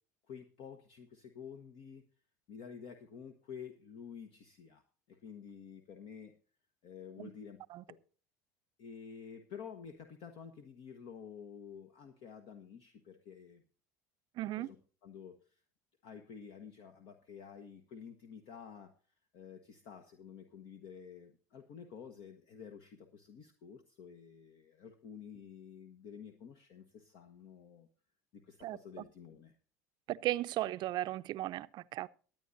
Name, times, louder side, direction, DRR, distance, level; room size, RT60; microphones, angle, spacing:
voice 1, 0.3-2.0 2.5-4.8 5.1-6.3 6.8-7.6 7.9-8.0 8.8-13.6 14.6-14.8 15.0-15.6 16.0-18.9 19.3-27.9 28.3-29.5, left 7 dB, 55° left, 1.2 m, -50 dB
voice 2, 14.4-14.7 28.6-29.0 30.1-32.1, right 15 dB, 50° right, 0.5 m, -36 dB
23.0 x 9.1 x 2.6 m
hypercardioid pair, 75°, 10 cm